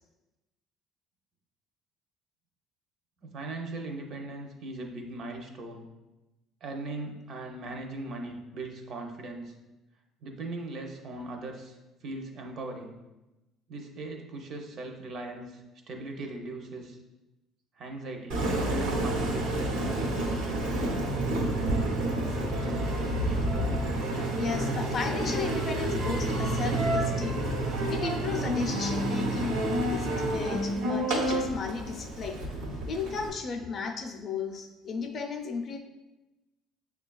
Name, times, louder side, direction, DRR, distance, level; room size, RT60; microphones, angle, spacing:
voice 1, 3.2-5.9 6.6-9.5 10.2-12.9 13.7-17.0 17.8-20.5, right 2 dB, 50° right, 3 dB, 0.5 m, -39 dB
Engine, 18.3-33.3, right 1 dB, 85° right, 0.7 m, -29 dB
voice 2, 24.4-27.5 27.8-29.6 29.8-32.4 32.9-35.8, left 5 dB, 40° left, 3 dB, 0.4 m, -35 dB
6.1 x 2.2 x 2.3 m, 1.0 s
cardioid pair, 130°, 0 cm